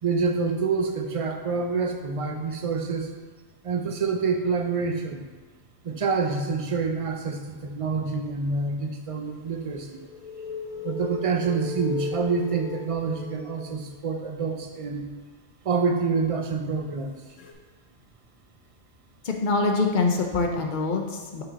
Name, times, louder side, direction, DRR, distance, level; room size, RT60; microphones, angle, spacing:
voice 1, 0.0-3.1 3.6-5.2 5.8-10.0 10.8-15.1 15.6-17.2, right 4 dB, 45° right, 4 dB, 0.4 m, -27 dB
sound 1, 9.4-14.1 17.4-17.5, left 3 dB, 85° left, 1.1 m, -36 dB
voice 2, 19.2-21.4, left 3 dB, 45° left, 2 dB, 0.8 m, -24 dB
5.7 x 5.5 x 4.0 m, 1.3 s
omnidirectional pair, 1.3 m